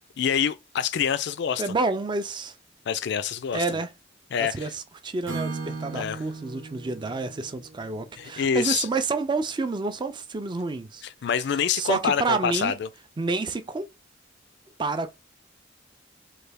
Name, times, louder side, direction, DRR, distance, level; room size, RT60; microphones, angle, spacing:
voice 1, 0.2-1.7 2.9-3.6 4.3-4.7 5.9-6.2 8.2-8.9 11.2-12.9, left 7 dB, 65° left, 0.4 m, -26 dB
voice 2, 1.6-2.5 3.5-3.9 4.4-11.0 11.7-12.7 13.2-13.9 14.8-15.1, right 3 dB, 25° right, 0.4 m, -29 dB
Acoustic guitar / Strum, 5.2-9.2, right 3 dB, 90° right, 0.9 m, -38 dB
3.2 x 2.3 x 3.3 m
head